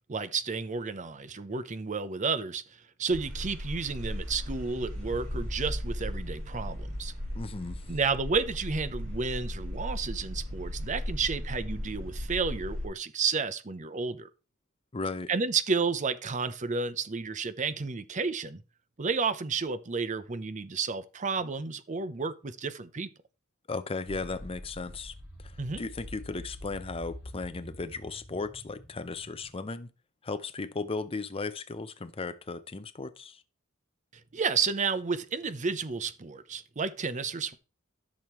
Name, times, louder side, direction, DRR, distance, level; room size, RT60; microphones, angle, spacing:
voice 1, 0.1-7.1 7.9-14.3 15.3-18.6 19.0-23.1 25.6-25.8 34.3-37.6, right 5 dB, 35° right, 0.7 m, -31 dB
sound 1, 3.1-12.9, equal, 85° right, 5.3 m, -36 dB
voice 2, 7.3-7.8 14.9-15.3 23.7-25.1 25.4-29.9 30.2-33.4, left 3 dB, 25° left, 0.6 m, -36 dB
sound 2, 24.1-29.5, left 1 dB, 5° right, 5.3 m, -46 dB
14.0 x 6.4 x 3.1 m
head